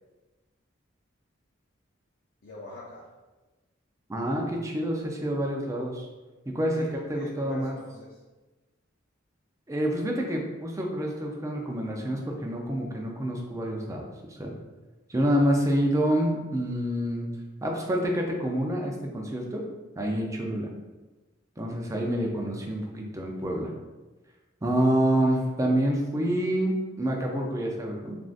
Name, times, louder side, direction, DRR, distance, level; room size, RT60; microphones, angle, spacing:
voice 1, 2.4-3.1 6.7-8.2, left 1 dB, 50° left, -5 dB, 0.5 m, -44 dB
voice 2, 4.1-6.1 6.5-7.7 9.7-14.5 15.1-17.3 17.6-19.6 20.0-20.7 21.6-23.7 24.6-28.2, equal, 15° right, 0 dB, 0.4 m, -27 dB
3.5 x 2.5 x 2.4 m, 1.2 s
head